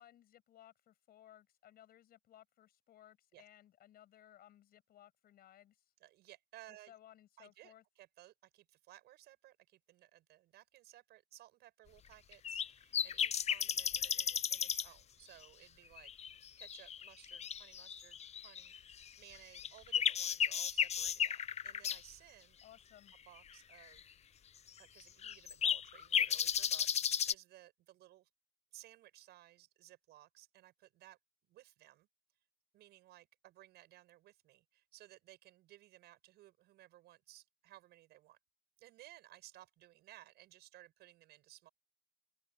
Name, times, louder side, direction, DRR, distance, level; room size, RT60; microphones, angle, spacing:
voice 1, 0.0-5.9 6.7-7.8 22.6-23.1, left 12 dB, 65° left, 7.5 m, -61 dB
voice 2, 6.0-6.9 7.4-16.1 16.6-18.7 19.2-22.6 23.3-24.1 24.8-28.3 28.7-31.2 31.5-32.1 32.7-38.4 38.8-41.7, right 15 dB, 75° right, 7.6 m, -59 dB
sound 1, 12.3-12.7 12.9-14.9 15.4-15.5 16.0-18.9 19.4-22.0 24.0-24.1 24.7-24.8 25.2-27.3, left 8 dB, 40° left, 0.8 m, -34 dB
open air
cardioid pair, 110°, 17 cm